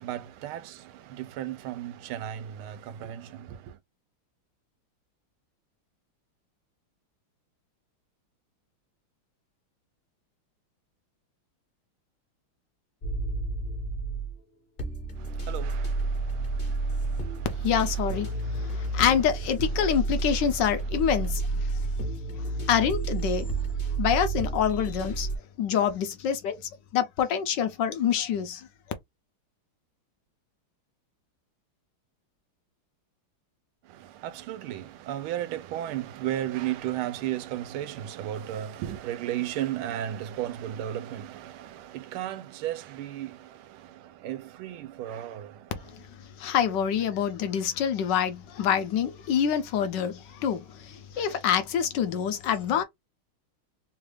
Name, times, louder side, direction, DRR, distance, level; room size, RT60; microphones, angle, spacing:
voice 1, 0.0-0.7 1.2-3.2 15.5-15.9 34.2-43.4 44.2-45.5, right 12 dB, 80° right, 1.4 m, -34 dB
sound 1, 13.0-14.4 14.8-25.4, right 3 dB, 40° left, 0.7 m, -30 dB
voice 2, 17.6-21.9 22.4-23.5 24.0-25.3 25.6-26.6 26.9-28.7 45.9-52.8, left 8 dB, 70° left, 1.1 m, -26 dB
3.6 x 2.4 x 3.2 m
omnidirectional pair, 2.3 m